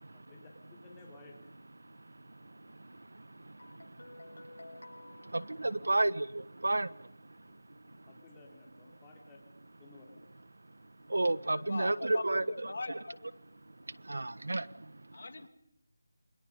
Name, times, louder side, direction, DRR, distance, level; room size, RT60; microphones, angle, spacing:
voice 1, 0.1-1.5 7.8-9.4 9.8-10.3, left 3 dB, 10° left, -1 dB, 4.1 m, -56 dB
voice 2, 2.9-4.4 5.1-7.0 11.1-12.7 13.9-14.8, right 2 dB, 80° right, 17 dB, 1.4 m, -32 dB
Guitar, 3.6-6.4, left 2 dB, 80° left, 7.8 m, -53 dB
voice 3, 11.5-13.3 15.1-15.5, left 3 dB, 50° left, 9 dB, 2.6 m, -41 dB
28.5 x 26.5 x 5.4 m, 0.74 s
figure-of-eight pair, 175°, 0 cm